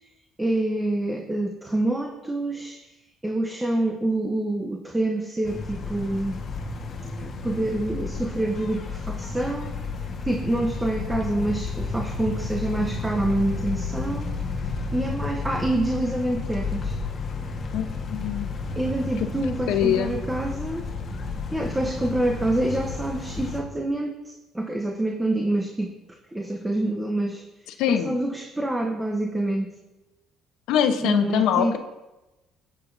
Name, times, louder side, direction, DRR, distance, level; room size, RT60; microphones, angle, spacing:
voice 1, 0.4-2.8 3.2-6.4 7.2-9.7 10.2-14.3 14.9-17.0 18.8-20.9 21.5-26.0 26.3-27.4 27.9-29.8 31.0-31.8, right 1 dB, 10° right, 3 dB, 0.9 m, -26 dB
sound 1, 5.4-23.6, left 4 dB, 40° left, 1.4 m, -32 dB
voice 2, 17.7-18.5 19.7-20.1 27.8-28.2 30.7-31.8, left 9 dB, 85° left, 7 dB, 0.9 m, -23 dB
20.0 x 8.7 x 2.7 m, 1.0 s
cardioid pair, 115°, 0 cm